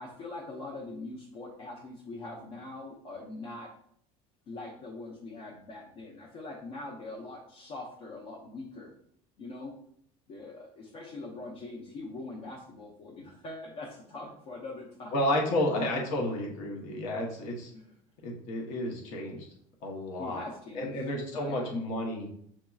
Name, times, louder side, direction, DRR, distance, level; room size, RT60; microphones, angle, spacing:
voice 1, 0.0-3.7 4.5-8.9 9.4-9.8 10.3-15.1 17.7-17.9 20.2-21.0 21.3-21.7, left 2 dB, 45° left, -2 dB, 0.7 m, -42 dB
voice 2, 15.1-17.7 18.2-19.4 19.8-20.4 20.7-22.3, left 1 dB, 65° left, 0 dB, 1.0 m, -31 dB
7.3 x 2.7 x 2.3 m, 0.67 s
cardioid pair, 160°, 14 cm